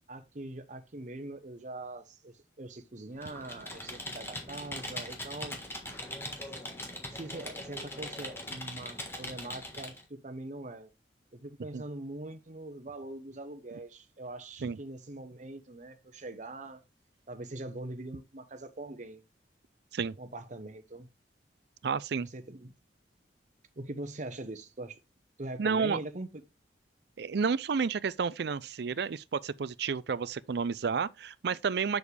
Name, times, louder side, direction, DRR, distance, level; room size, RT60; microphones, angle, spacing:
voice 1, 0.1-5.6 7.1-10.9 11.3-16.8 17.3-19.2 20.2-21.1 22.2-22.7 23.8-25.0 25.4-26.4, right 2 dB, 45° right, 0.9 m, -42 dB
Computer keyboard, 3.2-10.0, left 1 dB, 15° left, 1.6 m, -41 dB
voice 2, 21.8-22.3 25.6-26.0 27.2-32.0, right 5 dB, 65° right, 0.4 m, -31 dB
7.2 x 6.4 x 3.3 m
head